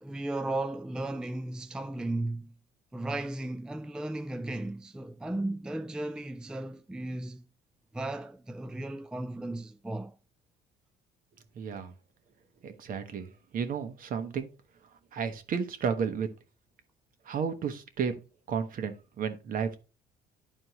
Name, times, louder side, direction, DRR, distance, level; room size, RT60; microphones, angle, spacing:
voice 1, 0.0-2.5 2.9-7.5 7.9-10.2, right 2 dB, 5° right, 0.3 m, -35 dB
voice 2, 11.5-11.9 12.6-14.5 15.1-16.3 17.2-18.1 18.5-19.8, right 6 dB, 55° right, 1.1 m, -32 dB
11.0 x 4.3 x 3.0 m
cardioid pair, 110°, 17 cm